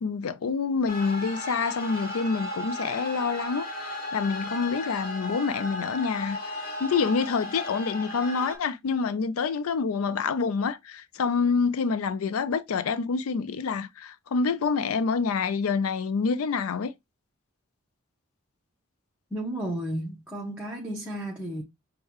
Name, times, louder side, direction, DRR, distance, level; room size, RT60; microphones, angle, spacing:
voice 1, 0.0-6.4 6.8-16.9, left 5 dB, 85° left, 0.4 m, -27 dB
sound 1, 0.9-8.6, left 1 dB, 45° left, 1.6 m, -35 dB
voice 2, 19.3-21.6, right 1 dB, 5° right, 0.8 m, -33 dB
6.4 x 2.2 x 2.9 m
head